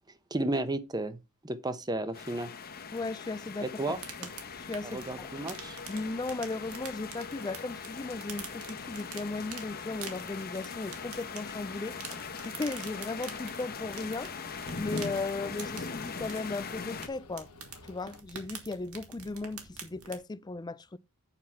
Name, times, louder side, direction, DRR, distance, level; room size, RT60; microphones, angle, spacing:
voice 1, 0.3-1.2 1.4-2.5 3.6-4.0 4.9-5.8, right 2 dB, 20° right, 0.8 m, -33 dB
sound 1, 1.9-18.2, left 5 dB, 80° left, 1.0 m, -52 dB
sound 2, 2.1-17.1, left 5 dB, 45° left, 1.0 m, -41 dB
voice 2, 2.9-4.3 4.6-5.3 5.9-12.2 12.4-17.5 17.8-21.0, left 3 dB, 20° left, 0.4 m, -37 dB
sound 3, 3.9-20.2, right 6 dB, 80° right, 2.1 m, -47 dB
8.7 x 5.7 x 4.5 m
head